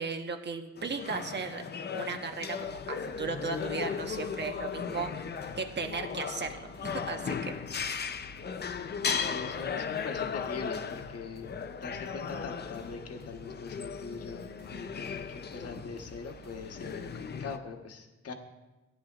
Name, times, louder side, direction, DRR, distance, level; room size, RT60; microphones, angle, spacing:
voice 1, 0.0-1.6 1.9-5.3 5.6-7.5 7.8-8.0, right 4 dB, 35° right, 4 dB, 1.2 m, -36 dB
sound 1, 0.8-17.6, left 6 dB, 35° left, 0.6 m, -37 dB
sound 2, 2.6-17.4, equal, 85° right, 2.2 m, -53 dB
voice 2, 9.0-11.5 11.8-18.3, left 4 dB, 55° left, 4 dB, 1.4 m, -42 dB
16.5 x 10.0 x 2.5 m, 1.1 s
cardioid pair, 90°, 30 cm